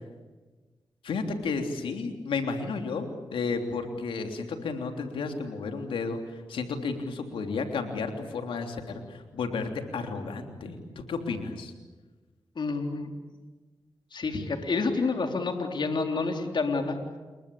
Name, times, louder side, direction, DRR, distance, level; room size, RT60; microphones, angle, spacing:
voice 1, 1.0-6.2 6.5-11.7, left 4 dB, 80° left, 5 dB, 3.3 m, -32 dB
voice 2, 12.6-13.1 14.1-17.0, left 4 dB, 60° left, 4 dB, 3.6 m, -28 dB
29.0 x 22.5 x 8.6 m, 1.3 s
supercardioid pair, 40°, 9 cm